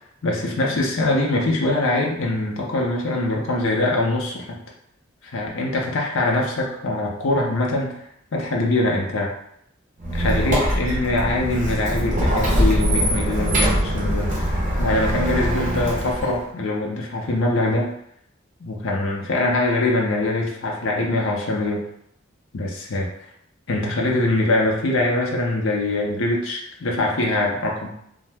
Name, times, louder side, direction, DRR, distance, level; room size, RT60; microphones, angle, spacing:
voice 1, 0.2-4.6 5.2-8.0 8.3-9.3 10.1-17.9 18.6-21.8 22.5-23.1 23.7-27.9, left 2 dB, 75° left, -1 dB, 0.5 m, -23 dB
Squeak, 10.0-16.4, equal, 40° right, 0.7 m, -22 dB
2.7 x 2.0 x 3.3 m, 0.73 s
head